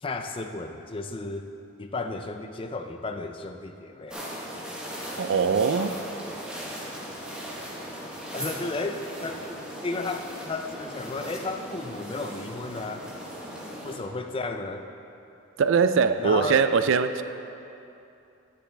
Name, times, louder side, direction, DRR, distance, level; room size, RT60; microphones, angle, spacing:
voice 1, 0.0-1.5 1.8-4.2 8.3-9.5 9.8-13.1 13.8-14.9 16.2-16.6, left 3 dB, 25° left, 6 dB, 0.4 m, -33 dB
sound 1, 4.1-14.0, equal, 5° right, 1.1 m, -38 dB
voice 2, 5.2-6.0 15.6-17.2, right 5 dB, 65° right, 10 dB, 0.4 m, -22 dB
9.9 x 9.8 x 3.4 m, 2.7 s
head